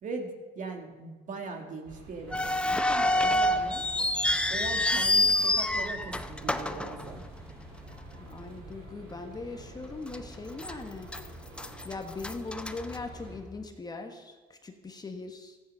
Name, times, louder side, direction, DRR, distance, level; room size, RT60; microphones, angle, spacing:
voice 1, 0.0-3.8 4.5-7.2, right 4 dB, 50° right, 3 dB, 2.3 m, -40 dB
sound 1, 1.8-13.4, right 3 dB, 80° right, 5.0 m, -48 dB
sound 2, 2.3-7.6 7.9-8.0 8.8-9.0 9.4-9.5 10.1-10.7 11.1-13.5, left 1 dB, 5° left, 0.7 m, -27 dB
voice 2, 8.2-11.4 11.8-15.6, left 3 dB, 25° left, 5 dB, 1.3 m, -40 dB
14.5 x 10.0 x 5.6 m, 1.3 s
cardioid pair, 110°, 17 cm